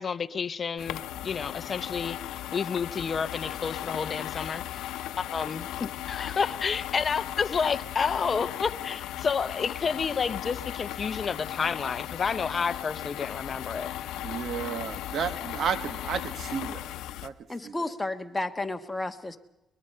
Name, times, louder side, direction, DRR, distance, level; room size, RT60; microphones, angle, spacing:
voice 1, 0.0-4.9 5.2-14.1, left 5 dB, 40° left, 0.6 m, -30 dB
sound 1, 0.8-17.3, left 13 dB, 85° left, 0.7 m, -37 dB
voice 2, 14.2-16.9 17.2-17.3 17.6-17.7, right 7 dB, 65° right, 1.5 m, -32 dB
voice 3, 17.5-19.4, left 2 dB, 15° left, 1.5 m, -32 dB
22.0 x 21.5 x 5.6 m
cardioid pair, 90°, 0 cm